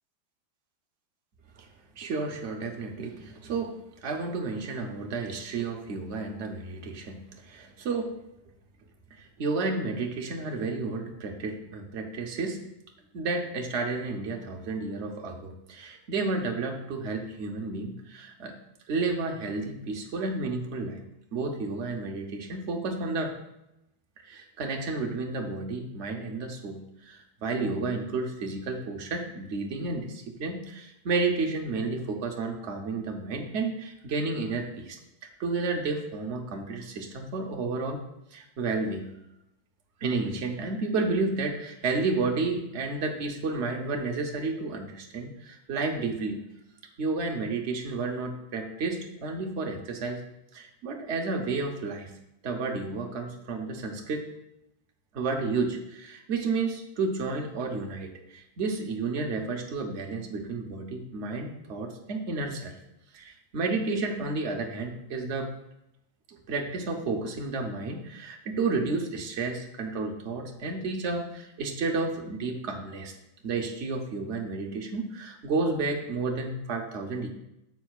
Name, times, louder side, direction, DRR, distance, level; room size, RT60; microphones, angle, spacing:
voice 1, 2.0-8.2 9.2-12.6 13.1-18.5 18.9-21.0 21.3-23.3 24.2-35.0 35.4-38.0 38.3-39.1 40.0-46.5 47.0-50.2 50.5-52.1 52.4-54.2 55.1-62.7 63.1-65.5 66.3-73.1 73.4-77.3, right 3 dB, 50° right, 2 dB, 0.9 m, -31 dB
9.1 x 7.2 x 2.4 m, 0.85 s
omnidirectional pair, 2.1 m